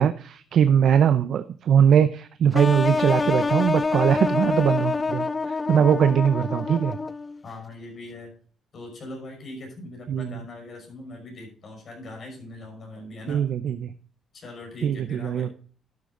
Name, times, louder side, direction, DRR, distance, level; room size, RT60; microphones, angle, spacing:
voice 1, 0.0-7.0 10.1-10.4 13.3-13.9 14.8-15.5, right 8 dB, 65° right, 12 dB, 0.6 m, -21 dB
sound 1, 2.5-7.4, left 4 dB, 25° left, 0.4 m, -26 dB
voice 2, 7.4-8.3 8.7-13.4 14.3-15.5, left 2 dB, 50° left, 1 dB, 5.9 m, -40 dB
12.0 x 8.4 x 3.8 m, 0.43 s
cardioid pair, 90°, 0 cm